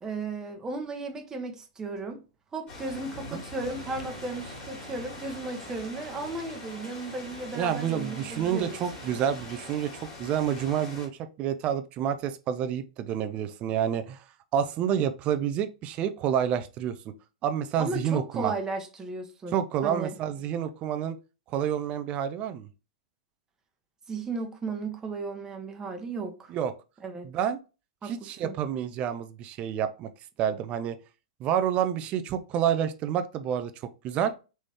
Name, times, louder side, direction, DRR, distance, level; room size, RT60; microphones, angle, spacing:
voice 1, 0.0-2.2 2.5-8.8 17.8-19.6 19.8-20.1 24.1-26.5 27.0-27.3 28.0-28.6, right 3 dB, 20° right, 1.1 m, -35 dB
sound 1, 2.7-11.1, left 2 dB, 30° left, 2.5 m, -43 dB
sound 2, 3.6-9.7, right 3 dB, 85° right, 1.2 m, -48 dB
voice 2, 7.6-14.2 14.5-17.0 17.4-18.5 19.5-21.2 21.5-22.7 26.5-26.7 27.2-27.6 28.0-30.1 30.4-31.0 31.4-33.7 34.0-34.3, right 9 dB, 35° right, 0.6 m, -28 dB
4.1 x 3.1 x 3.5 m
hypercardioid pair, 105°, 3 cm